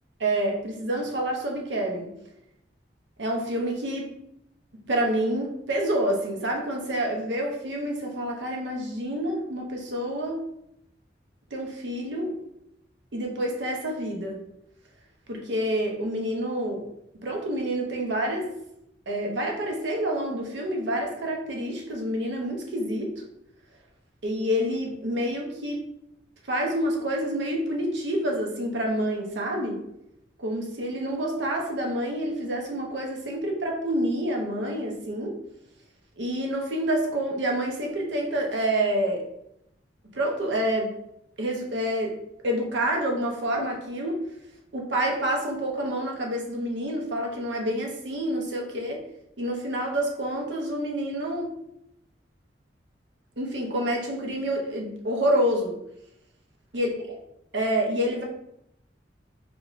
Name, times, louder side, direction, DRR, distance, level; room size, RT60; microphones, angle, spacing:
voice 1, 0.2-2.1 3.2-4.1 4.9-10.4 11.5-12.3 13.1-14.4 15.3-16.9 17.2-18.5 19.1-23.2 24.2-25.8 26.5-29.8 30.4-35.4 36.2-39.2 40.1-40.9 41.4-42.2 42.4-44.2 44.7-49.0 49.4-51.5 53.4-55.8 56.7-57.2 57.5-58.2, right 1 dB, 90° right, 0 dB, 0.7 m, -28 dB
3.5 x 3.0 x 2.5 m, 0.78 s
head